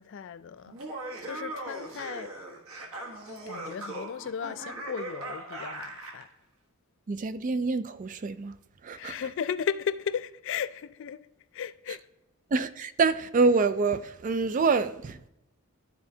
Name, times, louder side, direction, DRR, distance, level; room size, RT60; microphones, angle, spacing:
voice 1, 0.0-2.3 3.5-6.3 8.9-11.2 11.5-12.0, left 7 dB, 60° left, 0.3 m, -35 dB
Laughter, 0.7-6.3, right 2 dB, 70° right, 1.3 m, -39 dB
voice 2, 7.1-8.6 8.8-9.1 12.5-15.3, right 4 dB, 35° right, 0.3 m, -26 dB
12.5 x 4.4 x 2.7 m
head